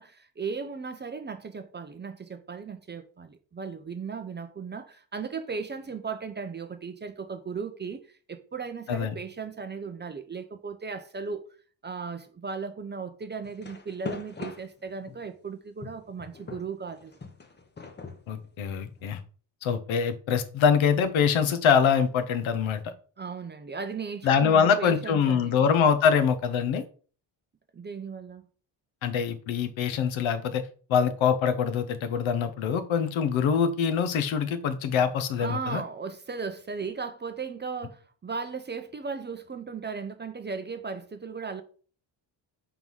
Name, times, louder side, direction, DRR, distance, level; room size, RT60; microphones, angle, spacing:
voice 1, 0.0-8.0 8.3-11.5 11.8-17.1 23.2-25.7 27.7-28.5 35.4-41.6, right 5 dB, 25° right, 0.5 m, -36 dB
sound 1, 13.4-15.3 15.8-19.1, left 4 dB, 20° left, 0.8 m, -41 dB
voice 2, 18.3-19.2 19.6-22.9 24.2-26.8 29.0-30.6 30.9-35.8, left 7 dB, 75° left, 1.0 m, -24 dB
4.7 x 3.7 x 5.4 m
cardioid pair, 130°, 47 cm